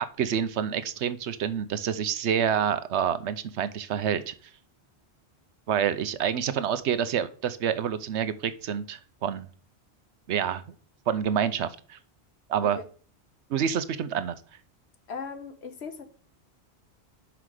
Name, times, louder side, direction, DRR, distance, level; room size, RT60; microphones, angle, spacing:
voice 1, 0.2-4.3 5.7-9.5 10.3-10.6 11.1-12.0 12.5-12.8 13.5-14.4, right 8 dB, 80° right, 13 dB, 1.0 m, -27 dB
voice 2, 15.1-16.1, left 5 dB, 70° left, 8 dB, 1.4 m, -38 dB
6.0 x 5.9 x 4.8 m, 0.42 s
omnidirectional pair, 1.1 m